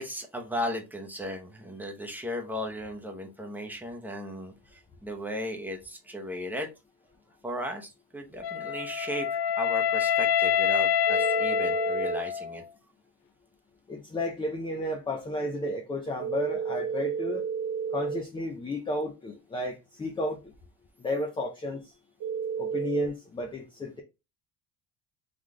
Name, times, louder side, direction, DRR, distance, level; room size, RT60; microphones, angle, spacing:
voice 1, 0.0-6.7 7.4-12.6, equal, 5° right, 0.7 m, -36 dB
Wind instrument woodwind instrument, 8.4-12.6, left 8 dB, 75° left, 0.6 m, -26 dB
sound 1, 11.1-12.2 16.2-18.2 22.2-23.1, right 7 dB, 40° right, 0.7 m, -32 dB
voice 2, 13.9-17.4 17.9-20.4 21.0-21.8 22.6-24.0, left 1 dB, 10° left, 0.4 m, -32 dB
3.9 x 3.1 x 3.6 m
cardioid pair, 145°, 48 cm